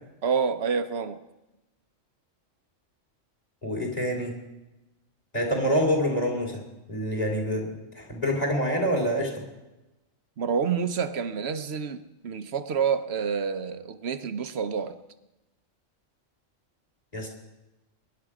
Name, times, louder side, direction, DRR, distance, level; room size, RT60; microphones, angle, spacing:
voice 1, 0.2-1.2 10.4-14.9, right 6 dB, 55° right, 10 dB, 1.0 m, -28 dB
voice 2, 3.6-4.3 5.3-6.6 6.9-9.4 17.1-17.3, equal, 30° left, 1 dB, 3.2 m, -26 dB
23.0 x 10.5 x 4.9 m, 1.0 s
omnidirectional pair, 1.4 m